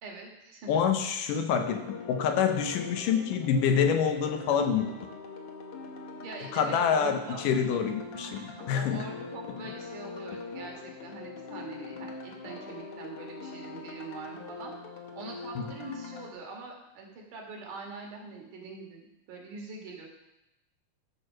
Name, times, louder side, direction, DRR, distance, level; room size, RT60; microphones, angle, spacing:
voice 1, 0.0-0.7 6.2-7.4 8.3-14.7 15.1-20.1, right 3 dB, 70° right, 0 dB, 3.2 m, -43 dB
voice 2, 0.7-4.9 6.5-9.1 15.6-15.7, left 7 dB, 80° left, 7 dB, 2.3 m, -27 dB
sound 1, 1.5-16.3, left 4 dB, 60° left, 1.7 m, -42 dB
13.0 x 4.6 x 6.2 m, 0.91 s
omnidirectional pair, 3.8 m